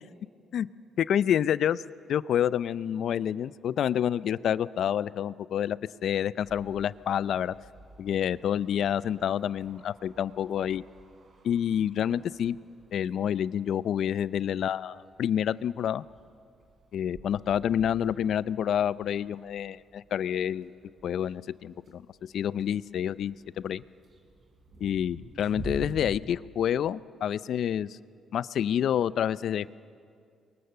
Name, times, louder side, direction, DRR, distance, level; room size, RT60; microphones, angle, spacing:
voice 1, 1.0-1.8 2.1-7.5 8.0-10.8 11.4-12.6 12.9-16.0 16.9-20.7 21.0-22.0 22.3-23.8 24.8-28.0 28.3-29.7, left 9 dB, 70° left, 18 dB, 0.5 m, -28 dB
sound 1, 6.4-26.2, right 2 dB, 50° right, 3.7 m, -49 dB
29.5 x 23.0 x 6.7 m, 2.3 s
cardioid pair, 90°, 0 cm